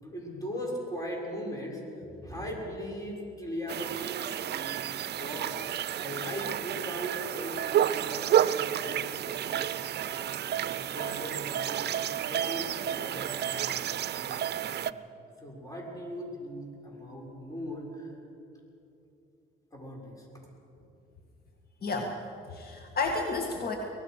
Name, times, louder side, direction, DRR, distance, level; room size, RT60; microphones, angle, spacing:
voice 1, 0.0-4.8 5.1-5.5 6.0-10.3 10.7-11.8 12.1-13.8 14.1-15.0 15.4-18.1 19.7-20.3, equal, 15° left, -1 dB, 6.7 m, -39 dB
sound 1, 3.7-14.9, right 10 dB, 55° right, 0.6 m, -31 dB
voice 2, 21.8-22.2 22.5-23.7, left 3 dB, 50° left, 2 dB, 2.0 m, -31 dB
24.0 x 19.0 x 6.6 m, 2.8 s
cardioid pair, 90°, 20 cm